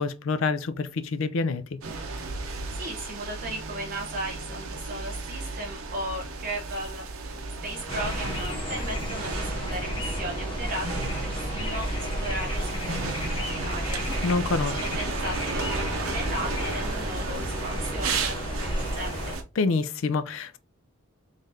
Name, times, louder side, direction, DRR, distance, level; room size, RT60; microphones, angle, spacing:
voice 1, 0.0-1.6 14.2-14.8 19.6-20.6, left 4 dB, 75° left, 0.4 m, -26 dB
sound 1, 1.8-19.4, right 3 dB, 85° right, 0.8 m, -33 dB
voice 2, 2.7-7.4 7.6-14.4 14.6-19.3, right 1 dB, 40° right, 0.7 m, -36 dB
sound 2, 7.9-19.4, left 1 dB, 25° left, 0.7 m, -33 dB
sound 3, 8.2-17.1, equal, 50° left, 1.6 m, -45 dB
3.8 x 3.2 x 2.6 m
head